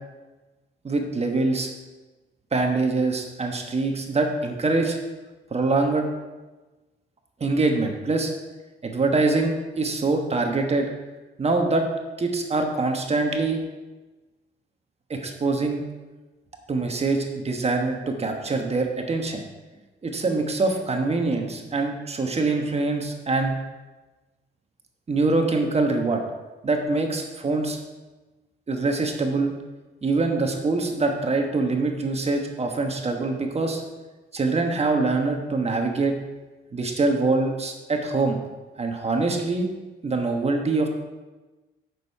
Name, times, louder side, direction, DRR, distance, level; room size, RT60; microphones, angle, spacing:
voice 1, 0.8-1.7 2.5-5.0 5.5-6.1 7.4-8.3 8.8-10.9 11.4-11.9 12.2-13.6 15.1-15.8 16.7-19.4 20.0-23.6 25.1-26.2 26.6-27.8 28.7-29.5 30.0-33.8 34.3-36.1 36.7-38.4 38.8-39.7 40.0-40.9, right 3 dB, 30° right, 4 dB, 1.3 m, -24 dB
8.5 x 6.5 x 4.8 m, 1.2 s
cardioid pair, 90°, 20 cm